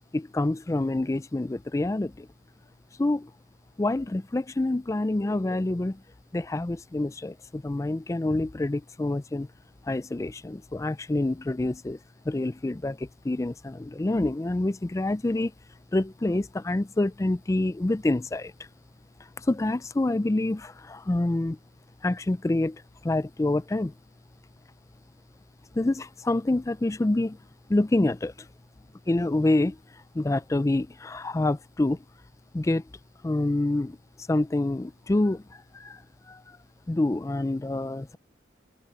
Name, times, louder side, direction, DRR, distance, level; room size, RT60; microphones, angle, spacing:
voice 1, 0.1-2.3 3.0-3.3 3.8-6.0 6.3-9.5 9.9-12.0 12.3-15.5 15.9-18.5 19.4-21.6 22.0-22.8 23.0-23.9 25.7-27.4 27.7-28.3 29.1-29.8 30.1-32.0 32.5-32.8 33.2-34.0 34.3-36.0 36.3-36.4 36.9-38.2, left 2 dB, 15° left, 0.3 m, -27 dB
open air
head